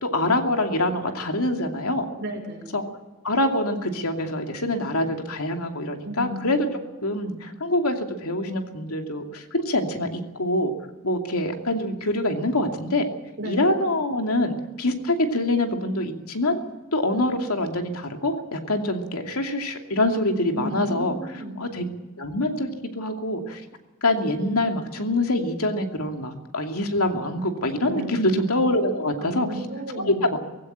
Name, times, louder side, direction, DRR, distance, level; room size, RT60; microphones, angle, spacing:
voice 1, 0.0-2.1 2.7-2.8 3.2-6.6 7.0-10.7 11.0-13.1 13.4-16.6 16.9-21.1 21.6-21.8 22.2-22.7 23.0-23.6 24.0-29.5 30.0-30.4, left 1 dB, 85° left, 4 dB, 2.6 m, -25 dB
voice 2, 2.2-2.8 6.0-6.6 13.4-13.8 20.5-21.6 27.9-28.3 29.2-30.2, equal, 55° right, 1 dB, 6.1 m, -34 dB
19.0 x 16.0 x 8.8 m, 1.2 s
head